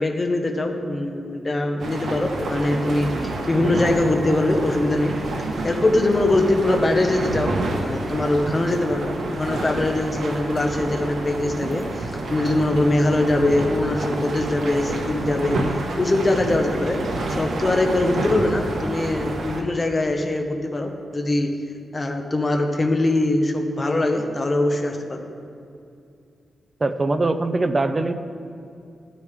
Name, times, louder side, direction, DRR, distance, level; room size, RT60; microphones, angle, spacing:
voice 1, 0.0-5.1 5.4-15.6 16.0-17.0 17.3-21.5 21.9-25.2, left 2 dB, 25° left, 3 dB, 0.9 m, -22 dB
sound 1, 1.8-19.6, right 2 dB, 85° right, 1.4 m, -28 dB
voice 2, 26.8-28.1, right 2 dB, 25° right, 9 dB, 0.5 m, -22 dB
13.0 x 9.9 x 3.5 m, 2.5 s
wide cardioid pair, 170°, 0 cm